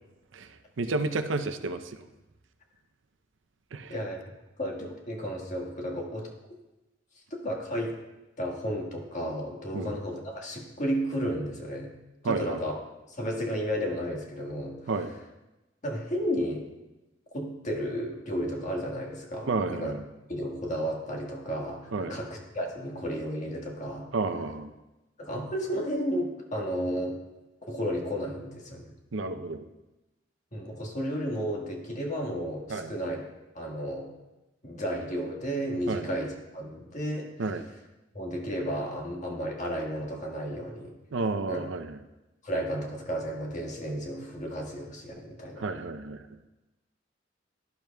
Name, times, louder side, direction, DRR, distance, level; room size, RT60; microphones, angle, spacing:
voice 1, 0.8-2.0 3.7-3.9 9.7-10.0 12.2-12.6 14.9-15.1 19.5-20.0 21.9-22.2 24.1-24.7 29.1-29.7 32.7-32.9 35.9-36.1 37.4-37.6 41.1-42.0 45.6-46.2, right 3 dB, 75° right, 9 dB, 0.6 m, -31 dB
voice 2, 4.6-6.3 7.4-7.9 8.4-11.9 12.2-12.7 13.2-14.8 15.8-16.7 17.3-19.5 19.8-19.9 20.3-24.1 25.2-27.2 27.7-28.9 30.5-33.2 33.5-34.1 34.6-37.3 38.1-40.9 41.5-41.6 42.4-45.7, equal, 40° left, 0 dB, 1.6 m, -33 dB
12.0 x 11.0 x 2.3 m, 1.0 s
head